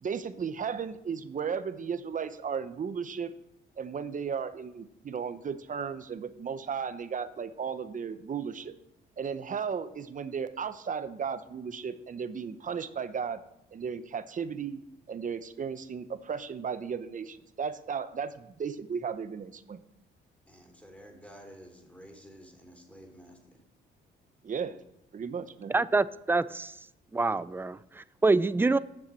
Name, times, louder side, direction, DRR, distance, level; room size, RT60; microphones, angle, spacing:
voice 1, 0.0-3.3 3.8-8.7 9.2-13.4 13.7-14.8 15.1-19.8 24.4-24.8 25.1-25.7, right 6 dB, 40° right, 12 dB, 0.9 m, -35 dB
voice 2, 20.5-23.6, equal, 5° left, 2 dB, 3.4 m, -51 dB
voice 3, 25.7-26.7 27.1-28.8, right 3 dB, 10° right, 17 dB, 0.4 m, -26 dB
8.7 x 7.2 x 7.8 m, 0.83 s
cardioid pair, 90°, 20 cm